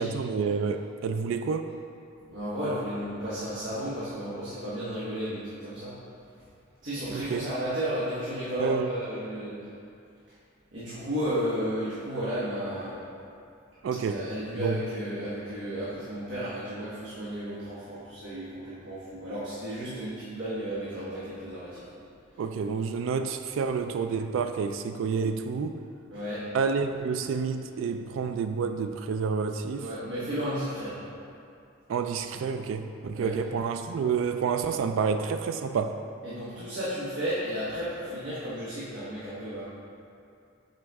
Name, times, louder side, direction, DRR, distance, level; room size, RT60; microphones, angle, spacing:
voice 1, 0.0-1.7 7.1-7.5 8.6-8.9 13.8-14.2 14.6-14.8 22.4-25.7 26.5-29.9 31.9-36.0, right 5 dB, 85° right, 8 dB, 0.3 m, -29 dB
voice 2, 2.3-5.9 6.8-9.6 10.7-13.0 14.0-21.8 26.1-26.4 29.8-31.0 33.1-33.3 36.2-39.7, equal, 65° right, -10 dB, 1.3 m, -33 dB
8.1 x 4.0 x 3.4 m, 2.6 s
head